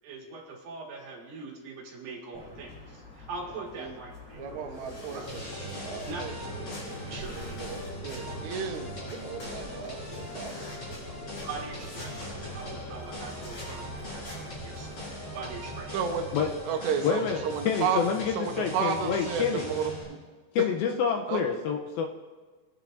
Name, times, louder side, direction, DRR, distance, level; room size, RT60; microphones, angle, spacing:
voice 1, 0.0-4.5 5.1-5.3 5.9-6.2 7.1-7.4 11.3-15.0 15.3-16.0, right 4 dB, 65° right, -2 dB, 3.3 m, -42 dB
sound 1, 2.3-14.9, left 1 dB, 50° left, 5.2 m, -46 dB
sound 2, 4.3-16.6, left 1 dB, 10° right, 2.5 m, -46 dB
voice 2, 4.4-6.3 6.7-10.0 10.3-10.5 15.9-16.3 16.7-18.0 18.4-20.2 21.3-21.4, right 7 dB, 85° right, 4 dB, 3.1 m, -33 dB
sound 3, 5.3-20.0, equal, 30° left, 5.0 m, -41 dB
voice 3, 17.0-19.7 20.5-22.1, left 7 dB, 80° left, 2 dB, 2.3 m, -28 dB
21.5 x 9.2 x 2.6 m, 1.4 s
omnidirectional pair, 4.8 m